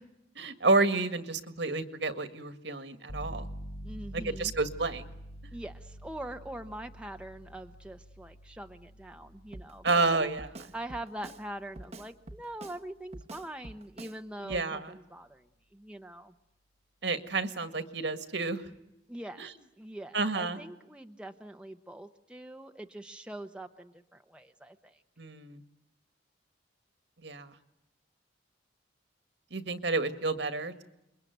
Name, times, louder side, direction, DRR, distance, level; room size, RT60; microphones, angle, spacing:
voice 1, 0.4-3.5 4.1-5.0 9.8-10.5 14.4-14.9 17.0-18.6 19.4-19.5 20.1-20.6 25.2-25.6 27.2-27.5 29.5-30.8, right 3 dB, 65° right, 9 dB, 1.8 m, -30 dB
sound 1, 3.1-13.6, equal, 55° left, 2.2 m, -47 dB
voice 2, 3.8-4.5 5.5-10.3 10.7-16.3 19.1-19.5 19.8-25.0, right 1 dB, 5° right, 5 dB, 0.9 m, -43 dB
Drum kit, 9.5-10.1 10.4-11.4 11.8-12.8 13.1-14.2 14.5-14.7, right 2 dB, 35° right, 1.1 m, -46 dB
28.5 x 22.5 x 9.3 m, 0.88 s
head